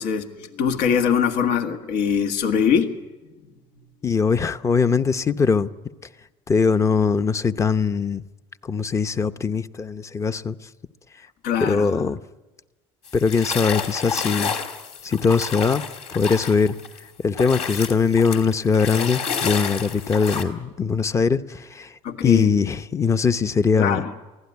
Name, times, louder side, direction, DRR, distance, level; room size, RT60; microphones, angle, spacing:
voice 1, 0.0-2.9 11.4-11.9 22.0-22.5 23.8-24.1, left 7 dB, 80° left, 1.8 m, -22 dB
voice 2, 4.0-5.7 6.5-8.2 8.6-10.6 11.6-12.2 13.1-14.6 15.0-15.8 16.1-16.7 17.2-24.0, left 5 dB, 25° left, 0.8 m, -21 dB
sound 1, 13.1-17.0 17.3-20.4, left 6 dB, 60° left, 3.0 m, -30 dB
24.0 x 16.5 x 9.6 m
cardioid pair, 120°, 13 cm